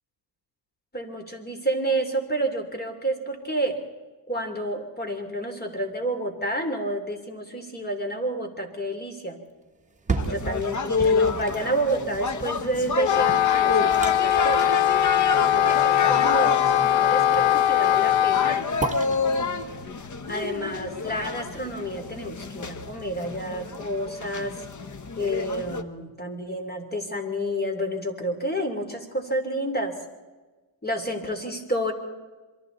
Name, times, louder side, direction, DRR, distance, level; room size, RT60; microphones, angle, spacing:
voice 1, 0.9-3.8 4.3-9.4 10.2-14.7 15.3-18.7 20.3-24.6 25.2-30.0 30.8-31.9, right 1 dB, 20° left, 5 dB, 3.3 m, -30 dB
sound 1, 9.8-21.8 22.3-22.4, right 3 dB, 15° right, 1.4 m, -36 dB
sound 2, 10.2-25.8, left 4 dB, 40° left, 1.3 m, -29 dB
Wind instrument woodwind instrument, 13.0-18.6, left 12 dB, 75° left, 0.6 m, -21 dB
27.5 x 23.0 x 4.1 m, 1.3 s
cardioid pair, 130°, 47 cm